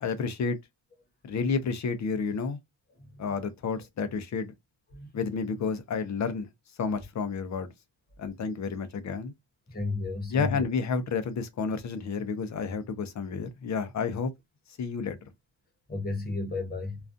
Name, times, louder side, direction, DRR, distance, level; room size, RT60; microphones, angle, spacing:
voice 1, 0.0-0.6 1.2-2.6 3.2-4.5 5.1-6.5 6.8-7.7 8.2-9.3 10.3-14.3 14.8-15.2, left 5 dB, 40° left, 0.4 m, -30 dB
voice 2, 9.7-10.6 15.9-17.0, left 3 dB, 20° left, 0.8 m, -32 dB
2.4 x 2.2 x 2.5 m
wide cardioid pair, 155°, 44 cm